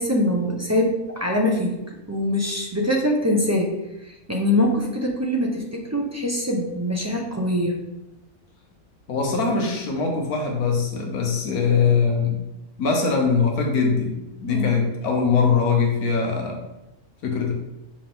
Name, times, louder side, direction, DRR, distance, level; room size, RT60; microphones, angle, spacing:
voice 1, 0.0-3.7 4.3-7.7 14.5-14.8, left 1 dB, 15° right, -2 dB, 0.6 m, -23 dB
voice 2, 9.1-12.4 12.8-16.6 17.2-17.5, left 5 dB, 80° left, 1 dB, 1.4 m, -22 dB
5.9 x 4.9 x 3.6 m, 0.94 s
omnidirectional pair, 1.6 m